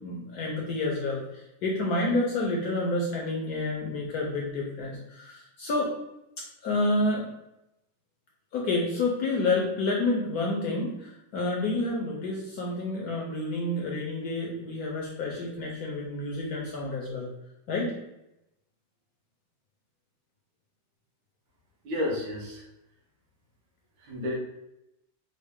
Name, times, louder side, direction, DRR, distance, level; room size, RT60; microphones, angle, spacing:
voice 1, 0.0-5.9 6.6-7.3 8.5-17.3 17.7-17.9, left 2 dB, 70° left, -2 dB, 0.9 m, -29 dB
voice 2, 21.8-22.7 24.0-24.3, left 1 dB, 65° right, -2 dB, 1.7 m, -31 dB
5.2 x 2.1 x 3.5 m, 0.87 s
omnidirectional pair, 2.3 m